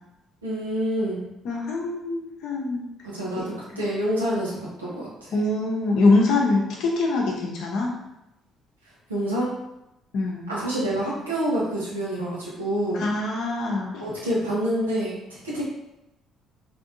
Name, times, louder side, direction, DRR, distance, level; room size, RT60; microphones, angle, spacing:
voice 1, 0.4-1.2 3.0-5.3 9.1-9.5 10.5-13.1 14.0-15.6, equal, 90° right, -8 dB, 0.9 m, -27 dB
voice 2, 1.4-2.9 3.4-3.5 5.3-7.9 10.1-10.5 12.9-14.1, left 3 dB, 60° left, -1 dB, 0.8 m, -23 dB
3.6 x 2.8 x 2.6 m, 0.90 s
figure-of-eight pair, 45°, 0 cm